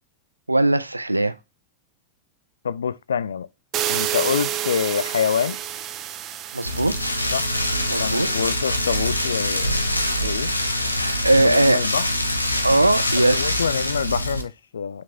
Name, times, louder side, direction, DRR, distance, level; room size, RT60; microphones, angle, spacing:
voice 1, 0.5-1.3 6.5-7.1 7.9-8.3 10.9-11.9 12.6-13.5, right 2 dB, 85° right, 0.5 m, -20 dB
voice 2, 2.6-3.5 3.9-5.6 7.3-7.5 8.0-9.8 10.2-10.5 11.4-12.1 13.2-15.0, left 7 dB, 70° left, 0.4 m, -26 dB
sound 1, 3.7-10.6, right 11 dB, 35° right, 0.7 m, -31 dB
Rain, 6.7-14.4, left 1 dB, 85° left, 0.9 m, -24 dB
6.0 x 4.6 x 4.3 m
figure-of-eight pair, 90°, 0 cm